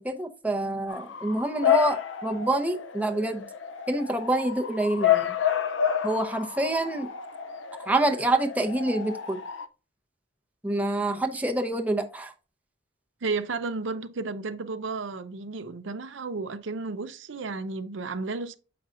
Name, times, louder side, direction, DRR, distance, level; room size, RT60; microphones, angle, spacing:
voice 1, 0.0-3.4 3.9-5.3 6.0-7.1 7.9-9.4 10.6-12.3, right 2 dB, 10° right, 0.7 m, -27 dB
Bark / Motor vehicle (road) / Siren, 0.9-9.7, left 10 dB, 70° left, 0.5 m, -29 dB
voice 2, 13.2-18.5, right 3 dB, 70° right, 0.6 m, -33 dB
7.6 x 5.5 x 2.5 m
head